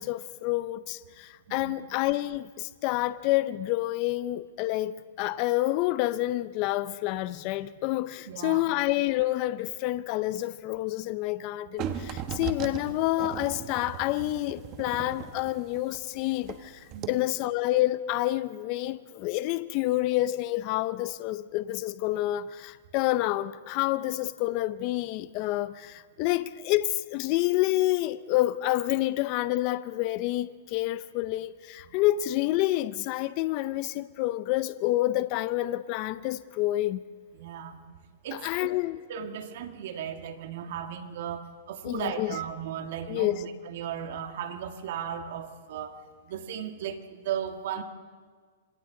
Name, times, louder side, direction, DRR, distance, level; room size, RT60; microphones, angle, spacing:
voice 1, 0.0-37.0 38.3-39.0 41.8-42.3 43.1-43.4, left 16 dB, 40° left, 0.5 m, -28 dB
voice 2, 8.3-8.7 16.9-17.3 37.3-37.8 38.2-38.7 39.1-41.4 41.7-45.9 46.3-47.8, right 8 dB, 60° right, 1.7 m, -36 dB
sound 1, 11.8-16.6 16.9-17.1, right 9 dB, 30° right, 1.2 m, -37 dB
26.0 x 26.0 x 3.8 m
hypercardioid pair, 150°, 0 cm